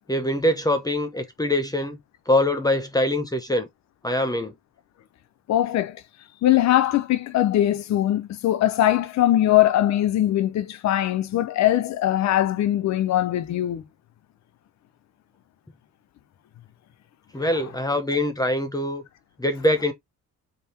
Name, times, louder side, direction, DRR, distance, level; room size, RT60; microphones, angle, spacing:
voice 1, 0.1-2.0 2.3-3.7 4.0-4.5 17.3-19.0 19.4-19.9, left 1 dB, 15° left, 0.8 m, -23 dB
voice 2, 5.5-6.0 6.4-13.8, left 13 dB, 65° left, 0.6 m, -21 dB
3.6 x 2.2 x 4.2 m
cardioid pair, 90°, 30 cm